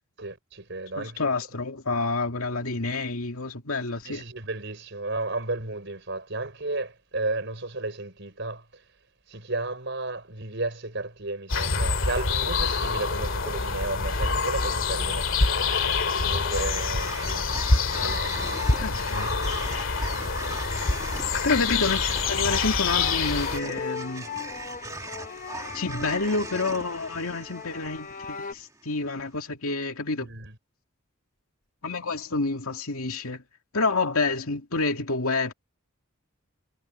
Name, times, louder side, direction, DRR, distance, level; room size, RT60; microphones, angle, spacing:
voice 1, 0.2-1.2 4.0-8.8 9.3-15.3 16.2-17.5 17.9-18.9 20.2-20.3 21.3-21.5 30.2-30.5, right 2 dB, 55° right, 5.6 m, -33 dB
voice 2, 1.0-4.2 18.8-19.3 21.2-24.3 25.7-30.3 31.8-33.4 33.7-35.5, left 3 dB, 90° left, 2.4 m, -28 dB
sound 1, 11.5-23.6, left 4 dB, 65° left, 2.2 m, -26 dB
sound 2, 16.5-28.8, right 3 dB, 15° right, 2.1 m, -39 dB
sound 3, 17.9-28.5, left 5 dB, 40° left, 0.9 m, -39 dB
head